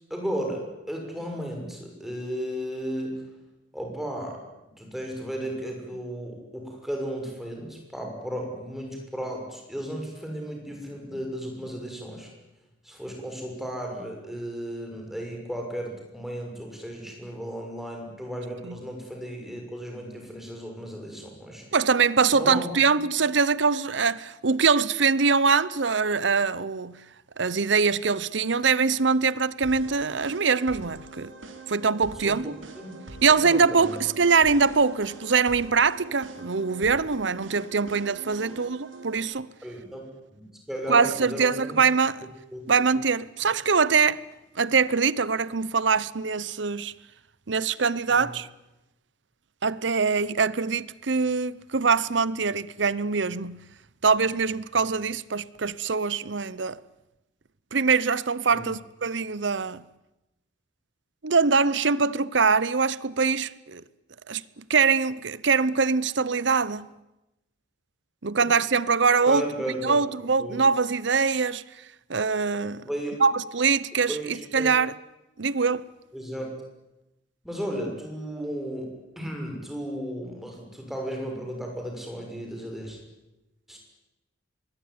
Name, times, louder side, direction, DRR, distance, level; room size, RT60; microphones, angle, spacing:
voice 1, 0.1-3.2 3.7-4.4 4.8-12.3 12.8-21.6 22.3-22.8 32.1-32.4 32.7-33.0 33.3-34.0 38.4-38.5 39.6-41.8 42.5-42.6 48.1-48.3 58.5-58.7 69.3-70.0 70.4-70.6 72.7-73.2 74.1-74.7 76.1-76.5 77.4-83.0 83.7-83.8, equal, ahead, 6.5 m, -34 dB
voice 2, 21.7-27.0 27.4-31.3 31.7-32.5 33.2-39.5 40.9-42.2 42.7-44.2 44.6-46.9 47.5-48.5 49.6-53.6 54.0-56.8 57.7-59.8 61.2-63.8 64.3-66.9 68.2-69.4 69.8-71.6 72.1-72.8 73.2-74.9 75.4-75.9, right 5 dB, 65° right, 0.8 m, -23 dB
sound 1, 29.6-39.2, right 3 dB, 85° right, 4.6 m, -44 dB
24.5 x 21.0 x 9.6 m
head